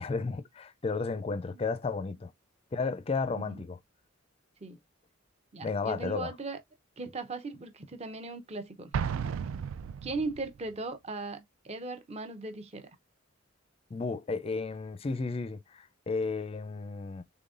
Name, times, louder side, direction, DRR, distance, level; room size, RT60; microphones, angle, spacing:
voice 1, 0.0-2.3 2.7-3.8 5.6-6.3 13.9-17.2, left 4 dB, 30° left, 0.4 m, -33 dB
voice 2, 5.5-6.6 7.0-8.9 10.0-12.9, right 3 dB, 30° right, 0.6 m, -38 dB
Explosion, 8.9-10.6, right 7 dB, 80° right, 0.3 m, -34 dB
3.8 x 3.5 x 2.4 m
head